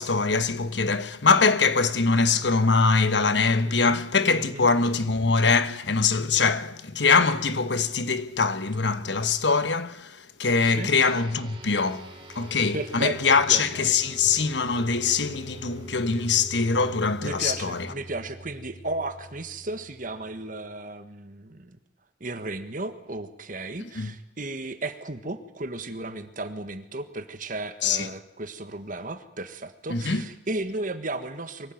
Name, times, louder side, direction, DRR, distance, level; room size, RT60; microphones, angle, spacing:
voice 1, 0.0-17.9 23.9-24.1 27.8-28.1 29.9-30.3, left 4 dB, 75° left, 1.2 m, -23 dB
voice 2, 3.6-4.0 4.3-4.7 10.6-10.9 12.7-13.7 17.2-21.8 22.2-31.7, right 2 dB, 50° right, 1.5 m, -34 dB
sound 1, 10.9-20.6, right 1 dB, 30° right, 3.5 m, -44 dB
23.5 x 16.0 x 9.3 m
head